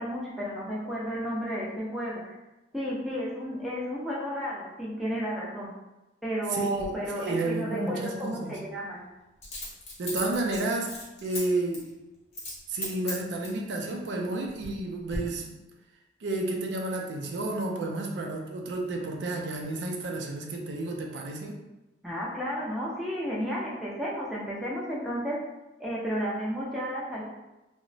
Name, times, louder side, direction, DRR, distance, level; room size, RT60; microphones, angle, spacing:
voice 1, 0.0-2.3 2.7-5.7 6.2-9.0 22.0-25.4 25.8-27.2, equal, ahead, -6 dB, 0.4 m, -32 dB
voice 2, 6.5-8.5 10.0-11.9 12.7-15.4 16.2-21.6, right 2 dB, 75° right, 1 dB, 0.4 m, -31 dB
Coin (dropping), 6.7-6.9 9.4-11.4 11.7-11.9 12.3-12.6 12.8-13.6 14.2-14.8 15.1-15.2, left 1 dB, 40° left, 0.8 m, -37 dB
2.8 x 2.1 x 2.6 m, 1.0 s
head